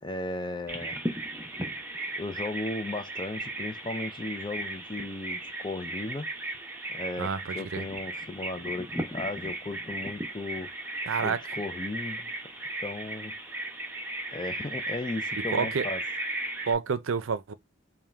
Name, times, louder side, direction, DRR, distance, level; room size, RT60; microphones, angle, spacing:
voice 1, 0.0-1.0 2.2-6.3 6.9-12.3 12.8-13.3 14.3-16.0, left 2 dB, 25° left, 0.5 m, -36 dB
Bird vocalization bird call bird song, 0.7-16.7, right 2 dB, 10° right, 0.7 m, -36 dB
voice 2, 7.2-7.8 11.1-11.4 15.5-15.9 16.7-17.5, right 5 dB, 80° right, 0.5 m, -29 dB
3.6 x 2.2 x 4.3 m
head